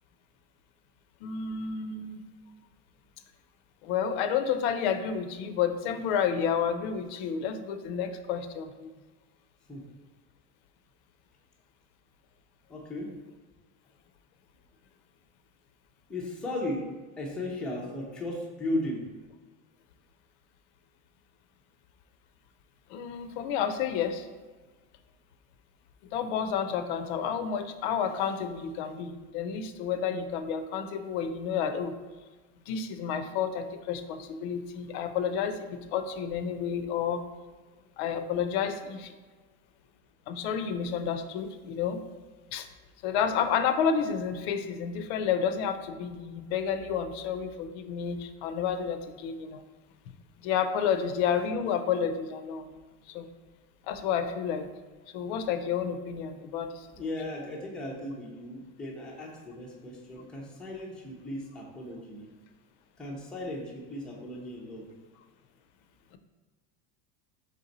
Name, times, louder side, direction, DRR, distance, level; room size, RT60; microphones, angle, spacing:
voice 1, 1.2-2.2 3.8-8.9 22.9-24.3 26.1-32.0 32.7-37.2 38.0-39.1 40.3-42.0 42.5-42.7 43.0-49.6 50.4-52.8 53.1-53.3 53.9-54.7 55.1-57.2, left 7 dB, 70° left, 9 dB, 0.5 m, -30 dB
voice 2, 12.7-13.1 16.1-16.9 17.2-19.0 57.0-62.3 63.0-64.9, left 1 dB, 5° left, -3 dB, 0.4 m, -36 dB
4.1 x 3.3 x 3.8 m, 1.3 s
supercardioid pair, 155°, 34 cm